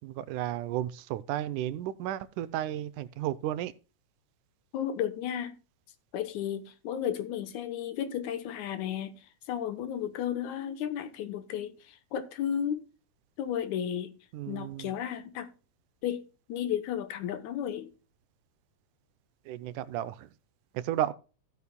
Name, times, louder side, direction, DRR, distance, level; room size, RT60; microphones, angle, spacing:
voice 1, 0.0-3.7 14.3-15.0 19.5-20.3 20.7-21.1, right 12 dB, 85° right, 2.1 m, -33 dB
voice 2, 4.7-5.6 6.1-12.8 13.4-14.1 14.5-15.5 16.0-16.2 16.5-17.9, left 9 dB, 75° left, 2.3 m, -33 dB
15.5 x 8.3 x 2.2 m
omnidirectional pair, 3.6 m